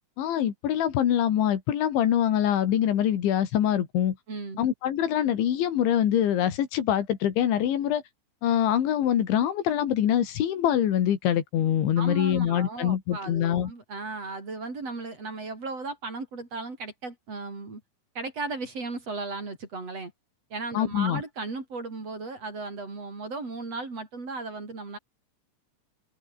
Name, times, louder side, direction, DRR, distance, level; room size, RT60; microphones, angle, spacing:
voice 1, 0.2-4.2 4.6-8.0 8.4-13.7 20.7-21.2, left 10 dB, 85° left, 4.8 m, -24 dB
voice 2, 4.3-4.6 12.0-17.8 18.1-20.1 20.5-25.0, right 3 dB, 35° right, 6.1 m, -36 dB
omnidirectional pair, 5.2 m